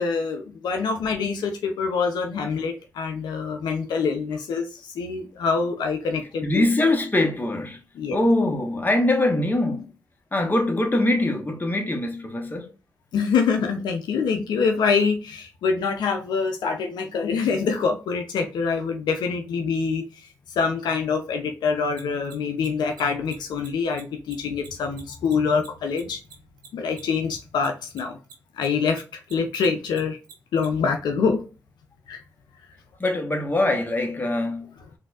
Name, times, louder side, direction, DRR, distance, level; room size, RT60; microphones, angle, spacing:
voice 1, 0.0-6.6 8.0-8.2 13.1-20.0 20.6-26.2 26.7-28.2 28.6-30.2 30.5-31.4 32.1-32.2, left 5 dB, 80° left, 0.5 m, -25 dB
voice 2, 6.4-7.8 8.1-9.8 10.3-12.7 33.0-34.7, left 1 dB, 25° left, 1.1 m, -23 dB
Mechanisms, 21.9-28.7 28.9-30.7, right 7 dB, 90° right, 0.7 m, -46 dB
3.9 x 2.6 x 2.4 m
supercardioid pair, 50°, 7 cm